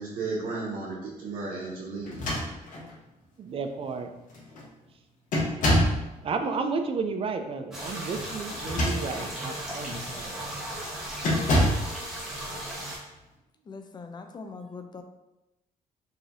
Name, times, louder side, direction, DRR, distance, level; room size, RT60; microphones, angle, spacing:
voice 1, 0.0-2.2, right 3 dB, 75° right, -6 dB, 1.0 m, -34 dB
sound 1, 2.0-3.0 3.8-3.9 4.3-4.7 5.3-6.1 8.5-9.3 9.9-10.1 11.2-11.9, left 1 dB, 65° left, 1.0 m, -26 dB
voice 2, 3.4-4.1 6.2-10.4 11.0-11.1, right 4 dB, 40° right, 6 dB, 0.4 m, -32 dB
sound 2, 7.7-13.0, right 1 dB, 5° right, 1.1 m, -36 dB
voice 3, 13.7-15.0, left 4 dB, 30° left, 6 dB, 0.4 m, -41 dB
4.8 x 2.8 x 2.6 m, 0.98 s
cardioid pair, 120°, 15 cm